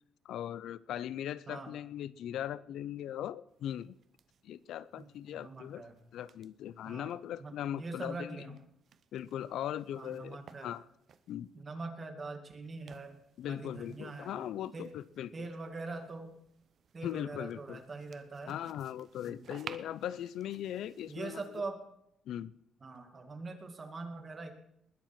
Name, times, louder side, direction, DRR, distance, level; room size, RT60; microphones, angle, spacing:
voice 1, 0.2-3.9 4.4-5.8 6.1-8.5 9.1-10.8 11.3-11.5 13.4-15.3 17.0-17.8 18.5-21.4 22.3-22.5, left 11 dB, 75° left, 18 dB, 0.5 m, -39 dB
sound 1, 3.5-11.6 12.6-21.7, right 7 dB, 50° right, 0.8 m, -57 dB
voice 2, 5.0-6.0 6.9-7.1 7.4-8.6 10.0-10.7 11.5-13.2 13.5-14.9 15.3-16.4 16.9-18.6 19.3-19.5 21.1-21.8 22.8-24.5, right 3 dB, 30° right, 6 dB, 2.1 m, -43 dB
20.5 x 7.5 x 6.0 m, 0.74 s
cardioid pair, 140°, 0 cm